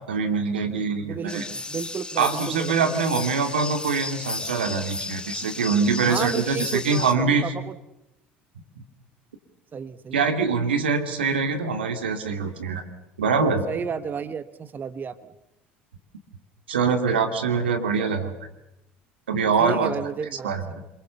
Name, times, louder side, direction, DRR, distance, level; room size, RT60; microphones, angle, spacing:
voice 1, 0.1-1.4 2.2-7.5 10.1-12.8 13.2-13.6 16.7-18.3 19.3-19.9 20.4-20.6, right 5 dB, 85° right, 6 dB, 2.7 m, -24 dB
voice 2, 1.0-2.9 6.0-7.8 9.7-10.3 13.7-15.3 19.6-20.9, right 6 dB, 35° right, 13 dB, 1.2 m, -32 dB
sound 1, 1.3-7.1, left 3 dB, 15° left, 2.2 m, -34 dB
27.0 x 22.5 x 7.1 m, 0.91 s
hypercardioid pair, 70°, 5 cm